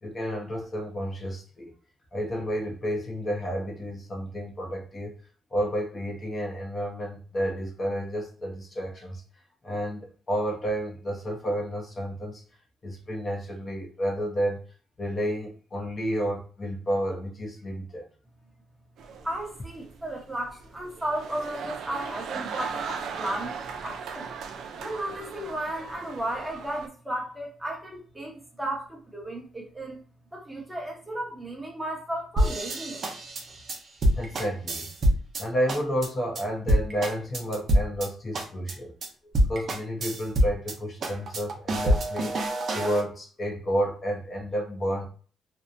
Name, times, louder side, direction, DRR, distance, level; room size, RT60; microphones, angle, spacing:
voice 1, 0.0-1.7 2.1-5.1 5.5-9.2 9.6-12.4 12.8-14.6 15.0-18.0 34.1-34.9 35.4-38.9 39.4-42.3 42.7-45.1, equal, 35° left, 0.7 m, -31 dB
sound 1, 19.0-26.9, right 6 dB, 75° right, 0.3 m, -38 dB
voice 2, 19.2-24.3 24.8-30.0 30.3-33.0, right 1 dB, 10° right, 0.9 m, -34 dB
sound 2, 32.4-35.4 35.7-36.1 36.3-36.4 36.7-38.1 38.3-38.7 39.0-39.1 39.3-40.7 41.0-43.0, equal, 55° right, 0.7 m, -25 dB
2.7 x 2.1 x 2.5 m
cardioid pair, 90°, 0 cm